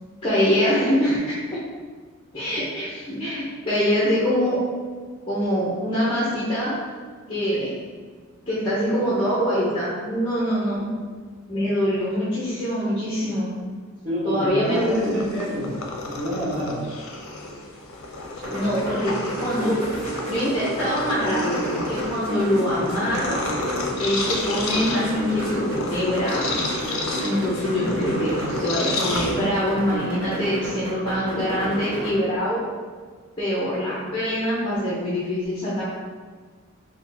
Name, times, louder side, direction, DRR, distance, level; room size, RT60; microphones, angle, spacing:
voice 1, 0.2-1.4 2.3-4.6 5.3-6.8 7.3-7.7 8.5-10.9 11.5-13.5 14.2-15.3 18.5-19.8 20.3-23.4 24.0-26.6 27.2-32.6 33.4-35.8, equal, 20° left, -8 dB, 0.7 m, -24 dB
voice 2, 14.0-15.8 16.0-16.9, equal, 35° right, -13 dB, 0.9 m, -28 dB
Purr, 14.7-29.8, left 2 dB, 75° left, 0.5 m, -31 dB
sound 1, 18.4-32.1, equal, 70° right, 0.7 m, -31 dB
3.4 x 2.2 x 4.1 m, 1.5 s
head